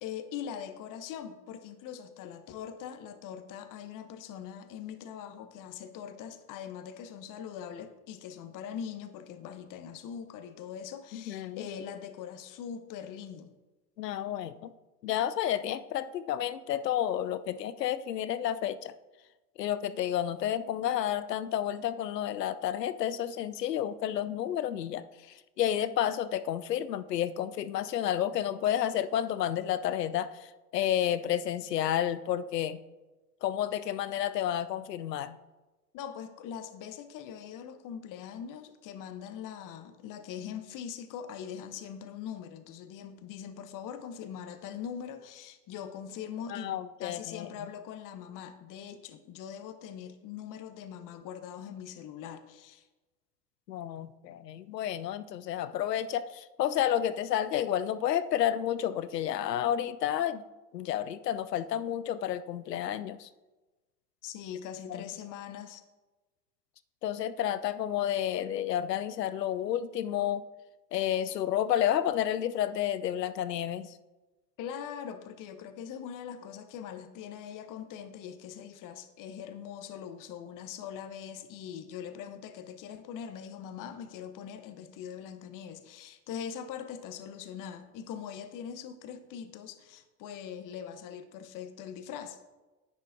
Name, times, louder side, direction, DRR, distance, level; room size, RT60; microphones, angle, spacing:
voice 1, 0.0-13.5 35.9-52.8 64.2-65.8 74.6-92.4, left 8 dB, 40° left, 10 dB, 1.0 m, -42 dB
voice 2, 11.1-11.6 14.0-14.7 15.0-18.9 19.6-32.8 33.4-35.4 46.5-47.5 53.7-60.4 60.7-63.3 64.9-65.0 67.0-70.4 70.9-74.0, left 11 dB, 85° left, 15 dB, 0.6 m, -31 dB
10.5 x 9.7 x 2.7 m, 1.2 s
figure-of-eight pair, 75°, 48 cm